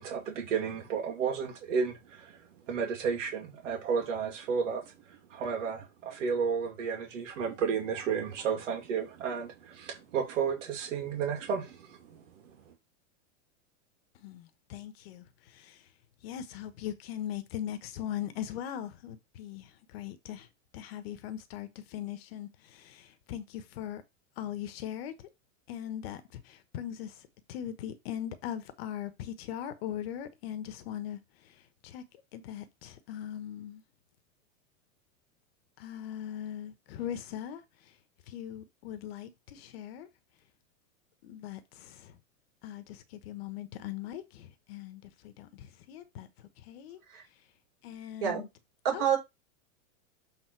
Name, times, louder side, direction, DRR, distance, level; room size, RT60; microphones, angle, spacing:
voice 1, 0.0-12.7, right 6 dB, 75° right, 2.4 m, -33 dB
voice 2, 14.2-15.8 16.2-20.5 20.7-24.0 24.4-25.3 25.7-32.0 32.3-33.8 35.8-37.6 38.3-40.1 41.2-42.1 42.6-46.3 46.6-47.0 47.8-48.5 48.9-49.0, left 10 dB, 50° left, 1.2 m, -40 dB
voice 3, 48.8-49.2, right 8 dB, 45° right, 5.1 m, -27 dB
8.0 x 3.8 x 4.6 m
supercardioid pair, 165°, 38 cm